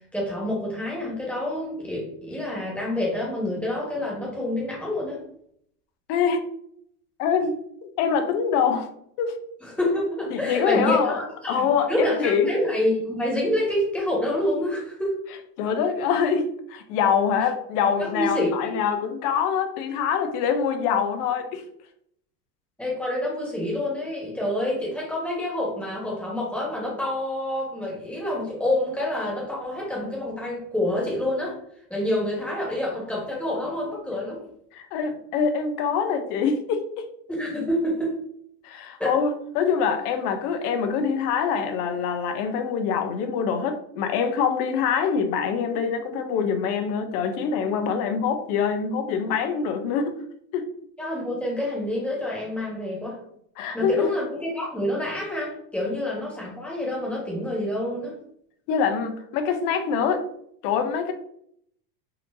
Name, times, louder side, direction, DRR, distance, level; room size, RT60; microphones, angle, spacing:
voice 1, 0.1-5.2 9.6-15.2 18.0-18.7 22.8-31.6 31.9-34.4 37.3-38.1 39.0-39.1 51.0-53.2 53.7-58.2, left 1 dB, 5° left, -4 dB, 1.3 m, -27 dB
voice 2, 6.1-6.5 7.2-7.6 8.0-8.9 9.2-9.3 10.3-11.2 11.5-12.5 15.6-21.6 34.7-37.1 38.6-50.2 50.5-50.7 53.6-54.1 58.7-60.2 60.6-61.1, left 6 dB, 65° left, 7 dB, 0.7 m, -24 dB
4.2 x 2.6 x 2.6 m, 0.68 s
supercardioid pair, 120°, 50 cm